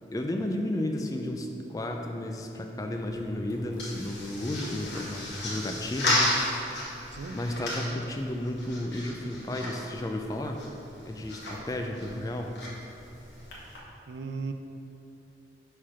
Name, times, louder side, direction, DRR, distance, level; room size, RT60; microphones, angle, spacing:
voice 1, 0.1-6.8 7.3-10.6 11.0-12.6, left 1 dB, 20° left, 3 dB, 0.3 m, -33 dB
sound 1, 2.9-13.8, left 1 dB, 75° left, 1.3 m, -34 dB
voice 2, 14.1-14.5, right 4 dB, 70° right, 6 dB, 0.4 m, -36 dB
4.8 x 4.3 x 5.6 m, 2.7 s
head